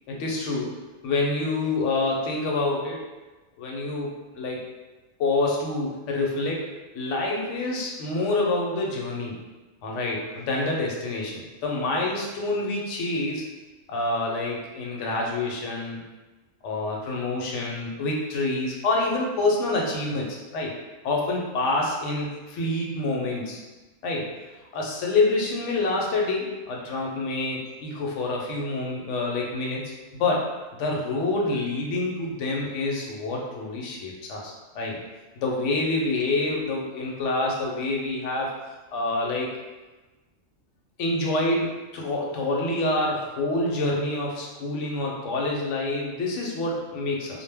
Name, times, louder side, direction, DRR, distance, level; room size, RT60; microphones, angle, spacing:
voice 1, 0.1-0.7 1.0-3.0 3.6-4.6 5.2-6.7 6.9-9.3 9.8-13.4 13.9-16.0 16.6-20.7 21.0-23.6 24.0-24.3 24.7-29.8 30.1-30.4 30.8-35.0 35.4-38.5 38.9-39.5 41.0-47.4, left 2 dB, 75° left, -1 dB, 0.9 m, -27 dB
2.2 x 2.1 x 3.3 m, 1.2 s
omnidirectional pair, 1.3 m